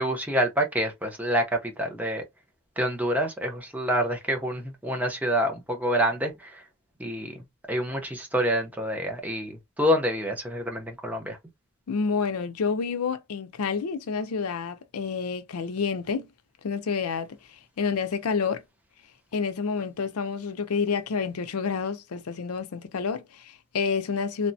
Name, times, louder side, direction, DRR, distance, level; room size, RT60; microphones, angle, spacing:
voice 1, 0.0-2.2 2.8-6.6 7.0-7.4 7.7-11.4, equal, 5° right, 0.6 m, -27 dB
voice 2, 11.9-16.3 16.6-17.3 17.8-18.6 19.3-24.5, left 5 dB, 90° left, 0.5 m, -29 dB
3.2 x 2.1 x 2.6 m
head